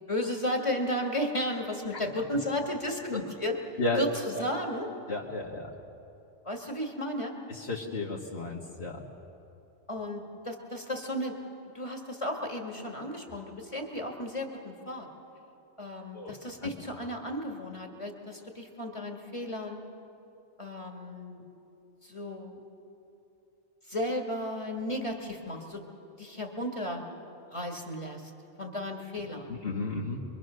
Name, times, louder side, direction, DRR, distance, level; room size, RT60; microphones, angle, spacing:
voice 1, 0.1-3.6 4.0-4.9 6.4-7.4 9.9-11.4 11.7-15.1 15.8-19.8 20.6-21.4 22.0-22.6 23.9-25.8 26.2-27.0 27.5-28.3 28.6-29.5, left 1 dB, 25° left, 2 dB, 1.9 m, -34 dB
voice 2, 5.1-5.7 7.5-9.0 16.1-16.3 16.6-16.7 29.5-30.2, left 2 dB, 55° left, -3 dB, 1.8 m, -33 dB
25.5 x 23.5 x 6.4 m, 2.9 s
omnidirectional pair, 1.2 m